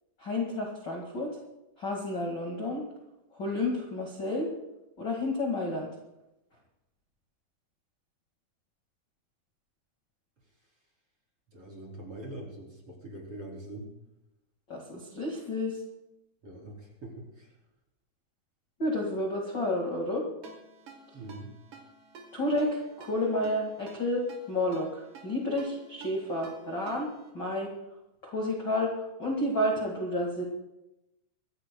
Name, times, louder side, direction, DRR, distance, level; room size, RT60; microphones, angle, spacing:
voice 1, 0.2-1.4 1.8-2.8 3.3-4.5 5.0-5.9 14.7-15.8 18.8-20.3 22.3-27.7 28.2-30.4, left 1 dB, 35° left, -1 dB, 1.8 m, -31 dB
voice 2, 11.5-13.9 16.4-17.5 21.1-21.5, right 1 dB, 35° right, -2 dB, 4.1 m, -43 dB
Ringtone, 20.4-27.3, right 4 dB, 50° right, 3.4 m, -51 dB
24.0 x 15.0 x 2.3 m, 0.92 s
omnidirectional pair, 4.8 m